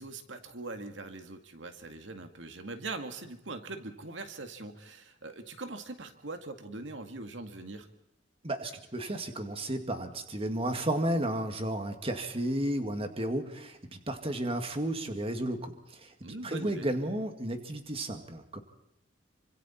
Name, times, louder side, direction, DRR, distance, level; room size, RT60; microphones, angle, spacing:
voice 1, 0.0-7.9 16.2-16.9, right 2 dB, 85° right, 7 dB, 2.1 m, -42 dB
voice 2, 8.4-16.1 16.4-18.6, right 1 dB, 30° right, 6 dB, 2.1 m, -33 dB
27.5 x 25.5 x 4.4 m, 0.83 s
head